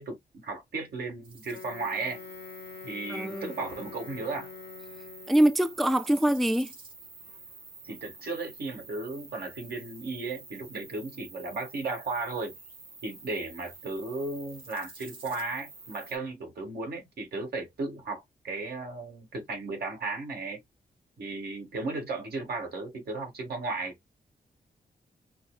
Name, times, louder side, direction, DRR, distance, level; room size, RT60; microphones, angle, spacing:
voice 1, 0.0-2.2 2.8-4.5 7.8-12.5 13.0-20.6 21.2-23.9, right 3 dB, 80° right, 1.7 m, -35 dB
sound 1, 1.2-16.2, right 4 dB, 65° right, 2.6 m, -49 dB
Wind instrument woodwind instrument, 1.5-5.6, left 7 dB, 85° left, 0.6 m, -45 dB
voice 2, 3.1-3.5 5.3-6.7, right 1 dB, ahead, 0.3 m, -24 dB
5.7 x 2.0 x 2.2 m
wide cardioid pair, 100°, 16 cm